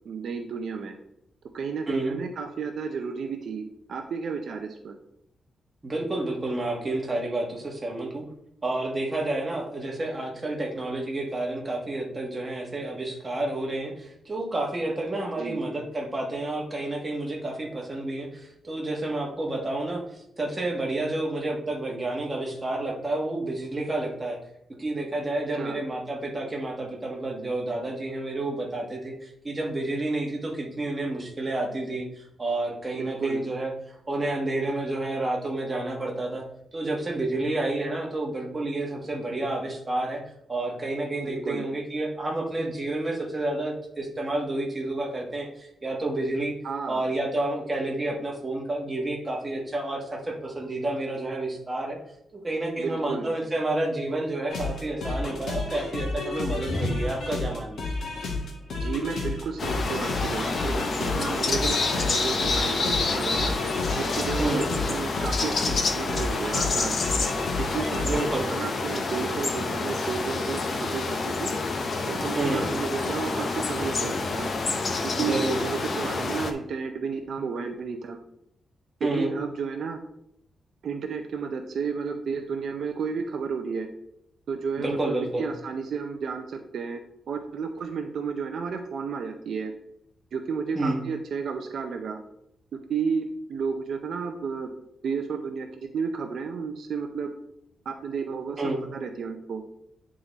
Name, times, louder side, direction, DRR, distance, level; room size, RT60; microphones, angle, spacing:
voice 1, 0.1-0.9 1.5-5.0 15.4-15.6 22.9-23.0 25.5-25.8 32.9-33.4 41.3-41.6 46.6-47.0 52.8-53.3 58.8-63.5 64.0-67.0 67.6-71.5 72.0-74.5 75.2-78.2 79.0-80.0 80.8-83.9 84.5-87.0 87.3-89.7 90.3-92.2 92.9-94.7 95.0-95.7 95.9-97.3 97.9-98.6 98.9-99.6, right 5 dB, 60° right, 4 dB, 0.6 m, -32 dB
voice 2, 1.9-2.2 5.8-8.2 8.6-20.0 20.4-24.4 24.8-33.7 34.1-36.4 36.7-40.2 40.5-46.5 46.9-52.0 52.4-57.8 64.4-64.7 68.1-68.4 72.3-72.7 75.2-75.6 79.0-79.3 84.8-85.5 90.7-91.0 98.6-98.8, right 2 dB, 20° right, -1 dB, 1.3 m, -30 dB
sound 1, 54.5-68.3, left 2 dB, 60° left, 1.5 m, -31 dB
sound 2, 59.6-76.5, left 3 dB, 40° left, 0.7 m, -28 dB
9.5 x 3.7 x 4.0 m, 0.77 s
wide cardioid pair, 170°, 0 cm